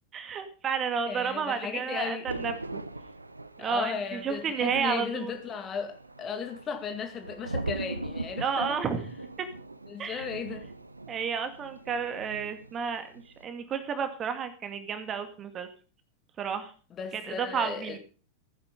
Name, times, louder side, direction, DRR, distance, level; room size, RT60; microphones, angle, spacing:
voice 1, 0.1-2.8 3.6-5.3 8.4-9.0 9.4-9.5 10.0-10.3 11.1-15.7 16.4-16.7 17.1-18.0, right 6 dB, 25° right, 2.1 m, -31 dB
voice 2, 1.1-2.3 3.6-8.8 9.9-10.7 16.9-18.0, left 6 dB, 25° left, 2.2 m, -36 dB
Thunder, 2.3-12.9 13.1-13.4, right 2 dB, 85° right, 0.8 m, -40 dB
15.5 x 10.0 x 5.3 m
figure-of-eight pair, 90°, 0 cm